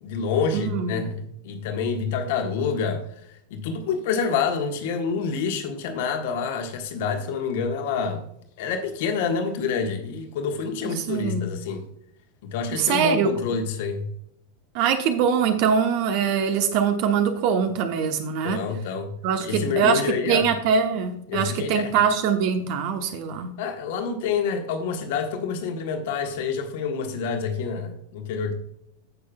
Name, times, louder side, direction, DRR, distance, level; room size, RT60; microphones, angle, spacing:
voice 1, 0.0-3.0 3.5-8.2 8.6-11.8 12.4-14.0 18.4-19.1 19.4-20.5 21.3-21.9 23.6-28.5, left 5 dB, 50° left, 1.5 m, -27 dB
voice 2, 0.5-1.0 10.8-11.5 12.7-13.3 14.7-18.6 19.2-20.0 20.3-23.5, right 7 dB, 45° right, 1.0 m, -23 dB
16.5 x 6.4 x 2.3 m
figure-of-eight pair, 90°, 0 cm